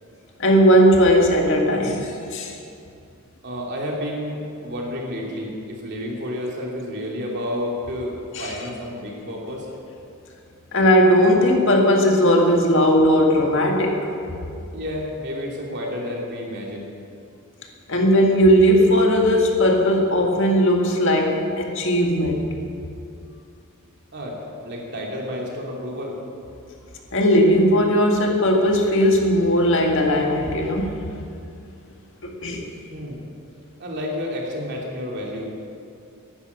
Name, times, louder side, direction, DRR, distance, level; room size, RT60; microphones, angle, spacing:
voice 1, 0.4-2.5 8.4-8.5 10.7-14.1 17.9-22.4 27.1-30.9 32.2-32.7, equal, 60° left, 1 dB, 2.0 m, -18 dB
voice 2, 3.4-9.7 14.7-16.9 24.1-26.2 32.9-33.2 33.8-35.5, left 1 dB, 50° right, -2 dB, 3.0 m, -30 dB
11.5 x 11.0 x 8.8 m, 2.5 s
head